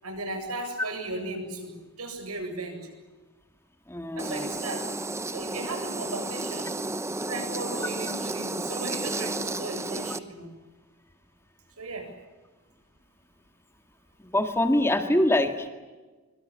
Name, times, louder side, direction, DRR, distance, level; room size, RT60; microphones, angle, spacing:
voice 1, 0.0-2.9 4.1-4.9 5.3-6.7 7.2-10.5 11.8-12.1, right 2 dB, 80° right, 5 dB, 8.0 m, -36 dB
voice 2, 3.9-4.5 14.2-15.7, left 1 dB, 10° left, 6 dB, 2.0 m, -24 dB
sound 1, 4.2-10.2, right 2 dB, 15° right, 0.9 m, -32 dB
25.0 x 24.0 x 8.6 m, 1.2 s
head